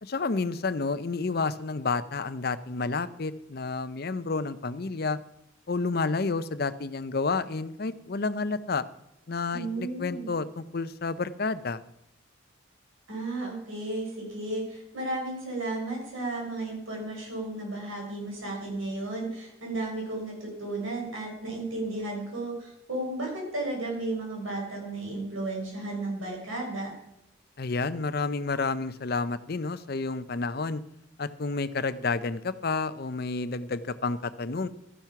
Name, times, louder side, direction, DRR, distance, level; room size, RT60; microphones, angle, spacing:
voice 1, 0.0-5.2 5.7-8.8 9.3-11.8 27.6-30.8 31.2-34.7, left 4 dB, 50° left, 14 dB, 0.6 m, -30 dB
voice 2, 9.5-10.3 13.1-26.9, right 2 dB, 85° right, -1 dB, 5.5 m, -34 dB
12.5 x 10.5 x 5.9 m, 0.86 s
head